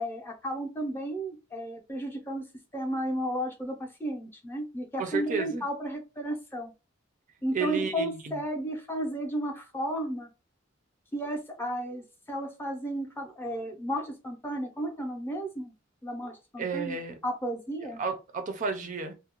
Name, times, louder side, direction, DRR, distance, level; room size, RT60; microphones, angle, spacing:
voice 1, 0.0-2.4 2.7-6.7 7.4-10.3 11.1-15.7 16.0-17.0 17.2-18.0, right 1 dB, 10° left, 0.5 m, -33 dB
voice 2, 5.0-5.6 7.5-8.2 16.6-17.1 18.0-19.1, right 5 dB, 40° right, 0.4 m, -31 dB
2.4 x 2.0 x 2.9 m
head